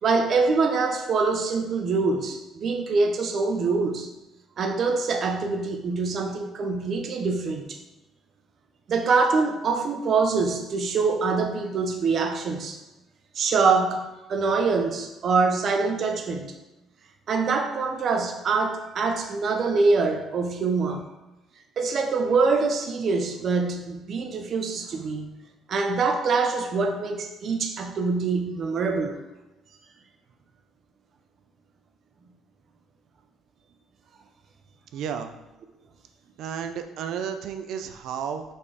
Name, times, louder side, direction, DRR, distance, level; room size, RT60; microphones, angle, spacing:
voice 1, 0.0-4.1 4.6-7.8 8.9-12.8 13.3-16.5 17.3-21.0 21.8-25.3 25.7-29.2, right 4 dB, 45° right, 5 dB, 0.9 m, -24 dB
voice 2, 34.9-35.3 36.4-38.4, right 7 dB, 70° right, 7 dB, 0.7 m, -32 dB
5.5 x 4.4 x 4.9 m, 0.99 s
cardioid pair, 130°, 0 cm